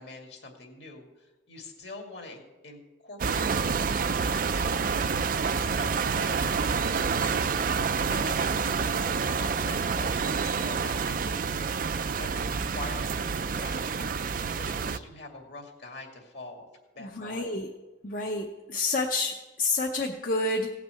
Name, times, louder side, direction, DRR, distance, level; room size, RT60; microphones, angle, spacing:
voice 1, 0.0-16.7 16.9-17.5, left 2 dB, 65° left, 2 dB, 2.3 m, -45 dB
sound 1, 3.2-15.0, right 5 dB, 45° right, 0.4 m, -28 dB
voice 2, 17.0-17.7 18.0-20.7, left 2 dB, 45° left, 2 dB, 0.8 m, -29 dB
17.0 x 6.0 x 7.7 m, 1.2 s
head